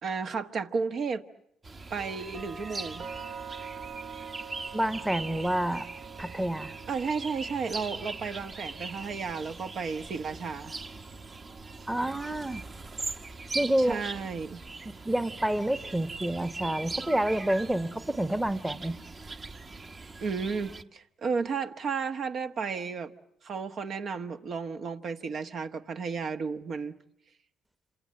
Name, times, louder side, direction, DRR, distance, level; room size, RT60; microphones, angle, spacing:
voice 1, 0.0-1.2 1.9-3.1 6.9-10.8 13.8-14.6 20.2-23.1 23.4-26.9, right 5 dB, 60° right, 1.2 m, -33 dB
sound 1, 1.6-20.8, right 3 dB, 35° right, 1.2 m, -41 dB
sound 2, 2.0-15.8, right 7 dB, 80° right, 5.6 m, -48 dB
voice 2, 4.7-5.9 6.2-6.7 11.9-12.6 13.5-14.0 15.0-19.0, right 1 dB, 10° right, 1.0 m, -28 dB
27.5 x 26.5 x 7.6 m
cardioid pair, 90°, 0 cm